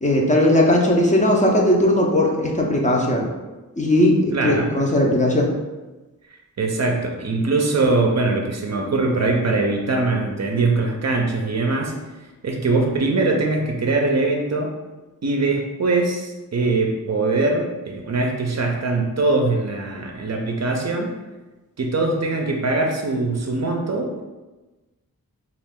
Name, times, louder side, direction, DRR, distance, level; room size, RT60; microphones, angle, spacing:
voice 1, 0.0-3.3 3.8-5.5, left 1 dB, 20° left, -1 dB, 0.6 m, -18 dB
voice 2, 4.3-4.7 6.6-11.9 12.4-14.7 15.2-21.1 21.8-24.2, right 3 dB, 50° right, 2 dB, 0.5 m, -22 dB
3.0 x 2.5 x 3.5 m, 1.2 s
cardioid pair, 65°, 35 cm